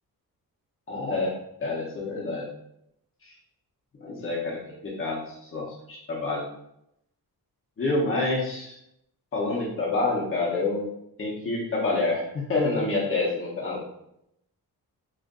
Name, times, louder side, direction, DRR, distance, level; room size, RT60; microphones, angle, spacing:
voice 1, 0.9-1.3 1.6-2.5 3.2-3.3 4.0-6.5 7.8-8.8 9.3-10.9 11.2-13.8, left 3 dB, 35° left, -5 dB, 0.9 m, -28 dB
3.2 x 2.5 x 3.8 m, 0.78 s
wide cardioid pair, 135°, 37 cm